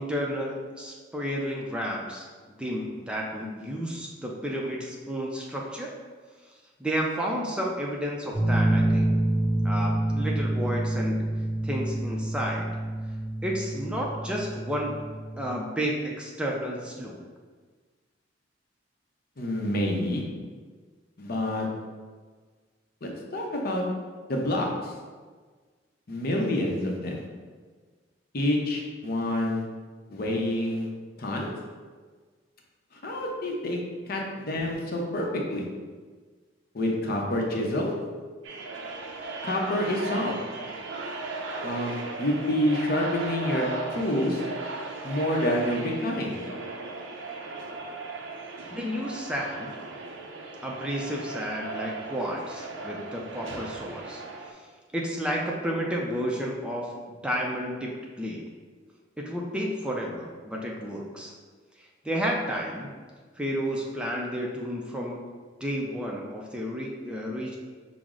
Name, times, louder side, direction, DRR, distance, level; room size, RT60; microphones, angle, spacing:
voice 1, 0.0-2.2 2.6-5.9 6.8-9.1 9.6-11.2 11.6-12.7 13.4-15.0 15.4-17.2 48.7-49.7 50.6-54.2 54.5-54.6 54.9-57.9 58.2-58.5 59.2-61.3 61.8-62.9 63.4-65.2 65.6-67.6, equal, 5° right, -2 dB, 0.4 m, -31 dB
sound 1, 8.3-15.6, right 1 dB, 20° left, 1.1 m, -27 dB
voice 2, 19.4-20.2 21.2-21.7 23.0-23.8 24.3-24.9 26.1-27.2 28.3-29.6 30.1-30.9 31.2-31.5 33.0-33.8 34.1-35.6 36.7-37.9 39.4-40.3 41.6-43.7 43.9-44.4 45.0-46.4, left 1 dB, 55° left, 0 dB, 0.7 m, -27 dB
sound 2, 38.4-54.5, right 3 dB, 85° right, 0.5 m, -37 dB
5.9 x 2.0 x 3.7 m, 1.5 s
head